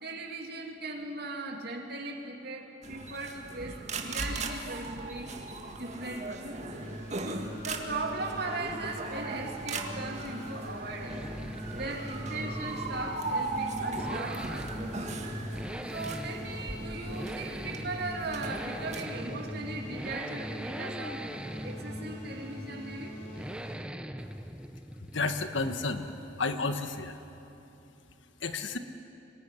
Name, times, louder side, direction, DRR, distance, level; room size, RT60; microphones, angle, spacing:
voice 1, 0.0-5.3 5.7-6.9 7.6-11.3 11.8-14.9 15.9-21.3 21.6-23.2, right 2 dB, 55° right, 2 dB, 2.9 m, -38 dB
sound 1, 2.8-19.0, right 2 dB, 40° right, 1.9 m, -38 dB
sound 2, 6.7-23.8, equal, 40° left, 6.0 m, -43 dB
sound 3, 8.6-26.5, equal, 5° right, 0.8 m, -42 dB
voice 2, 25.1-26.1 26.4-27.2 28.4-28.8, left 3 dB, 75° left, 8 dB, 1.5 m, -31 dB
24.5 x 19.5 x 9.9 m, 3.0 s
head